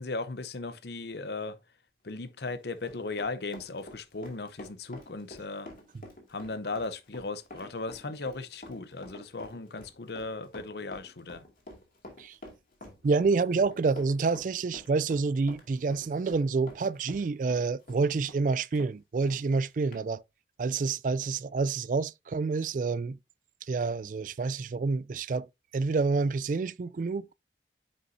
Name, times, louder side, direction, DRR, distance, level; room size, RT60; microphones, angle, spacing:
voice 1, 0.0-1.6 2.0-5.7 6.3-11.5, left 3 dB, 65° left, 0.7 m, -37 dB
Run, 2.3-18.9 19.3-19.4 19.9-20.0, left 1 dB, 50° left, 2.5 m, -48 dB
voice 2, 13.0-20.2 20.6-23.2 23.7-25.5 25.7-27.3, right 4 dB, 45° right, 0.3 m, -28 dB
9.6 x 5.4 x 2.7 m
head